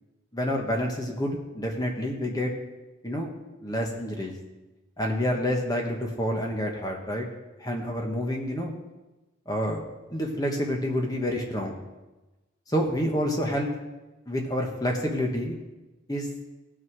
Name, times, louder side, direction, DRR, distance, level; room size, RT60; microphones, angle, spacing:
voice 1, 0.3-2.5 3.0-3.3 3.6-4.3 5.0-7.3 7.6-8.7 9.5-9.8 10.1-11.8 12.7-13.7 14.3-15.6 16.1-16.3, equal, 20° left, 1 dB, 1.3 m, -28 dB
16.0 x 6.4 x 4.7 m, 1.1 s
head